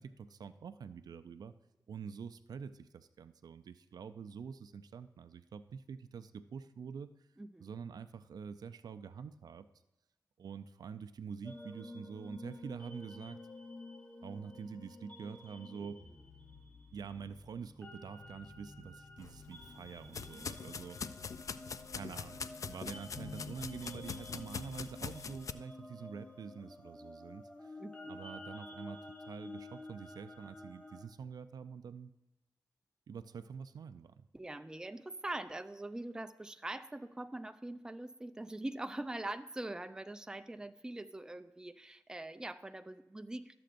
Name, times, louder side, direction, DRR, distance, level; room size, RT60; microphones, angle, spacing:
voice 1, 0.0-1.5 1.9-7.1 7.6-9.7 10.4-13.4 14.2-16.0 16.9-21.3 21.9-27.8 28.1-32.1 33.1-34.3, right 6 dB, 70° right, 12 dB, 0.4 m, -46 dB
voice 2, 7.4-7.7 27.8-28.3 34.3-43.5, right 1 dB, 10° right, 9 dB, 0.4 m, -43 dB
sound 1, 11.4-31.0, left 2 dB, 20° left, 1.1 m, -51 dB
sound 2, 19.2-25.5, left 5 dB, 50° left, 0.4 m, -44 dB
13.0 x 7.6 x 2.5 m, 0.96 s
wide cardioid pair, 90°, 7 cm